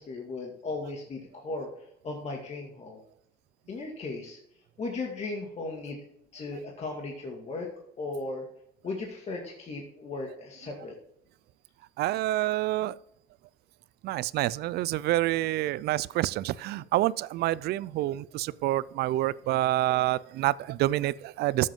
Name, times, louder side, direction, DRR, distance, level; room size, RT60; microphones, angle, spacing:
voice 1, 0.0-1.7 2.0-3.0 3.7-4.4 4.8-6.0 6.3-7.7 8.0-8.4 8.8-11.0, left 3 dB, 40° left, 0 dB, 2.1 m, -36 dB
voice 2, 12.0-12.9 14.0-21.7, right 15 dB, 75° right, 20 dB, 0.4 m, -27 dB
13.0 x 7.6 x 3.7 m, 0.71 s
cardioid pair, 110°, 17 cm